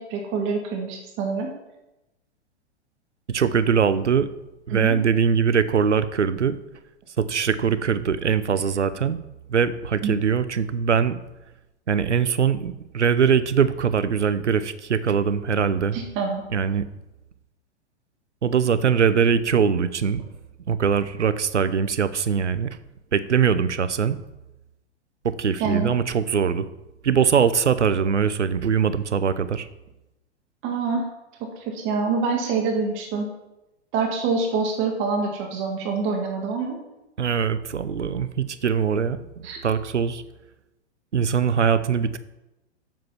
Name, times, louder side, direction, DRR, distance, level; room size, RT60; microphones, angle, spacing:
voice 1, 0.0-1.6 4.7-5.0 10.0-10.2 15.9-16.4 25.6-25.9 30.6-31.1 31.4-33.3 33.9-36.8 39.4-39.6, right 4 dB, 35° right, 1 dB, 1.8 m, -26 dB
voice 2, 3.3-4.3 4.7-6.6 7.2-9.2 9.5-11.2 11.9-16.0 16.5-16.9 18.4-20.2 20.7-22.8 23.1-24.2 25.2-26.7 27.0-29.7 37.2-39.2 39.6-40.2 41.1-42.2, right 7 dB, 90° right, 14 dB, 0.7 m, -22 dB
7.5 x 7.3 x 5.8 m, 0.96 s
hypercardioid pair, 110°, 34 cm